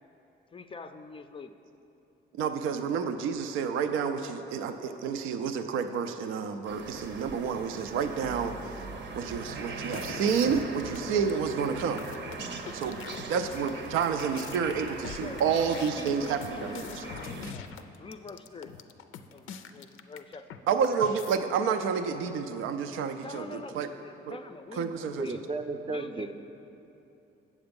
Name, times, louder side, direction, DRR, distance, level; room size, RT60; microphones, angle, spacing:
voice 1, 0.5-1.5 15.0-17.7 18.0-18.7 19.3-20.7 23.2-25.4 25.9-26.3, left 3 dB, 25° left, 8 dB, 0.4 m, -45 dB
voice 2, 2.3-8.8 9.2-12.0 12.7-13.0 13.3-17.0 20.7-23.9 24.3-24.4 24.7-25.3, right 6 dB, 90° right, 8 dB, 0.4 m, -29 dB
sound 1, 6.6-17.5, right 4 dB, 65° right, 0.8 m, -40 dB
sound 2, 9.8-11.0 11.3-11.4 11.7-20.6 20.8-21.4, left 8 dB, 85° left, 0.4 m, -43 dB
voice 3, 25.2-26.3, right 3 dB, 30° right, 7 dB, 0.5 m, -33 dB
7.8 x 7.1 x 5.2 m, 2.9 s
cardioid pair, 90°, 20 cm